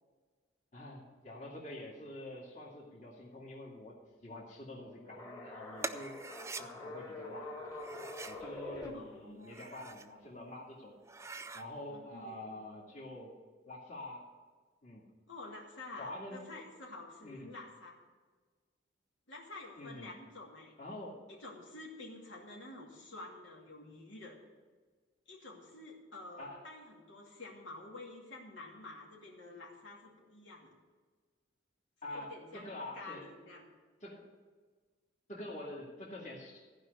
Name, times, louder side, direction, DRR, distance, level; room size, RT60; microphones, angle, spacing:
voice 1, 0.7-6.2 6.6-7.5 8.2-10.9 11.5-13.3 13.7-14.3 14.8-15.0 16.0-16.5 17.2-17.5 19.8-20.1 20.8-21.2 26.4-26.6 32.0-33.3 34.0-34.3 35.3-36.7, left 1 dB, 40° left, -3 dB, 2.3 m, -46 dB
sound 1, 5.0-8.9, left 2 dB, 15° left, 1.7 m, -45 dB
sound 2, 5.8-6.6 7.7-8.4 9.3-10.1 10.5-10.6 11.0-11.7, right 3 dB, 15° right, 0.4 m, -44 dB
voice 2, 8.9-9.5 11.9-12.4 15.3-18.0 19.3-20.7 21.3-24.4 25.3-30.7 32.0-32.7 32.9-33.7, left 2 dB, 80° left, -2 dB, 2.6 m, -49 dB
14.5 x 5.3 x 8.3 m, 1.4 s
head